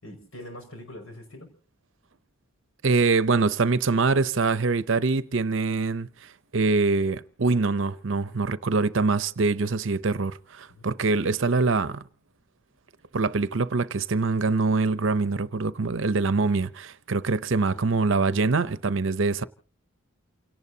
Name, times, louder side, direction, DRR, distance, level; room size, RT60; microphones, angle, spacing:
voice 1, 0.0-1.5 10.7-10.9 17.7-18.3, left 1 dB, 85° left, 5.7 m, -44 dB
voice 2, 2.8-6.1 6.5-12.0 13.1-19.4, right 3 dB, 70° right, 0.7 m, -24 dB
28.5 x 18.0 x 2.8 m
head